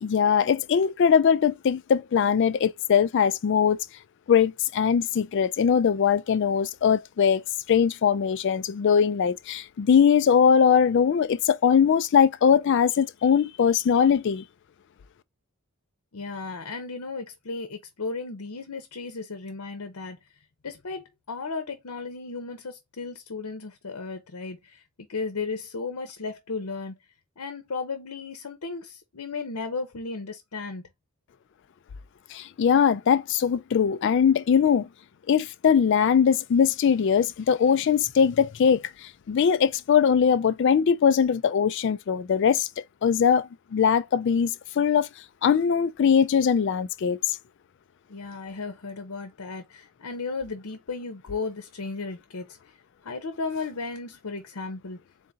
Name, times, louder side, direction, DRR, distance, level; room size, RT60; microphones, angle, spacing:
voice 1, 0.0-3.8 4.3-14.4 32.3-34.9 35.3-42.7 43.0-45.1 45.4-47.4, left 7 dB, 55° left, 0.3 m, -21 dB
voice 2, 16.1-20.2 20.6-26.9 27.4-30.8 48.1-52.8 53.0-55.0, left 4 dB, 85° left, 0.8 m, -35 dB
3.9 x 3.7 x 2.7 m
head